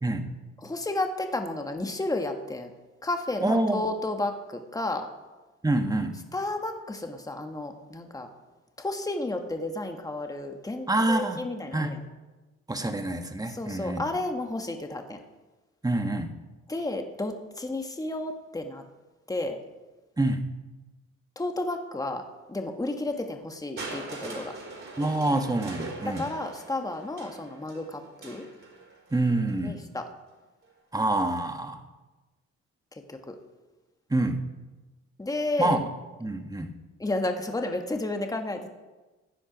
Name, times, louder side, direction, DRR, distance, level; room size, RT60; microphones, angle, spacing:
voice 1, 0.6-2.7 3.0-5.1 6.3-8.3 8.8-12.0 13.5-15.2 16.7-18.8 19.3-19.6 21.4-24.5 26.0-28.4 29.6-30.0 33.1-33.4 35.2-35.8 37.0-38.7, left 2 dB, 10° left, 5 dB, 1.4 m, -32 dB
voice 2, 3.4-3.9 5.6-6.2 10.9-11.4 11.7-11.9 12.7-14.0 15.8-16.3 20.2-20.5 25.0-26.3 29.1-29.8 30.9-31.8 34.1-34.4 35.6-35.9 36.2-36.7, right 2 dB, 10° right, 6 dB, 1.4 m, -26 dB
Crushing, 23.8-29.7 30.6-30.7, right 3 dB, 45° right, 4.5 m, -42 dB
16.0 x 9.8 x 5.1 m, 1.2 s
cardioid pair, 90°, 30 cm